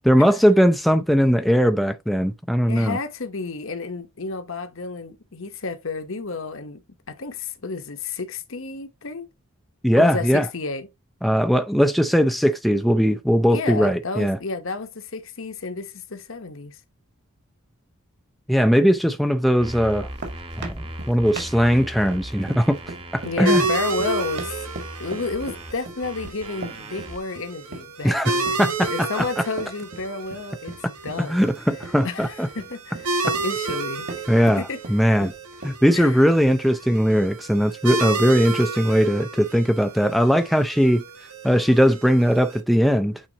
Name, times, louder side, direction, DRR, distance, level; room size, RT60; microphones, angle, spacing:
voice 1, 0.0-3.0 9.8-10.5 11.2-14.4 18.5-20.1 20.6-22.8 23.1-23.6 28.0-29.3 31.2-32.5 34.3-35.3 35.6-41.0 41.4-43.2, equal, ahead, 0.4 m, -19 dB
voice 2, 2.7-6.8 7.1-9.3 10.0-10.9 13.5-16.8 23.2-24.6 25.0-30.7 31.0-31.5 32.0-34.3 34.6-34.8 35.9-36.2, left 4 dB, 60° left, 1.0 m, -31 dB
sound 1, 19.6-27.2, right 1 dB, 25° right, 1.0 m, -38 dB
sound 2, 19.9-36.3, right 2 dB, 50° right, 2.1 m, -39 dB
sound 3, 23.4-42.6, right 3 dB, 85° right, 1.7 m, -31 dB
8.7 x 4.1 x 2.9 m
head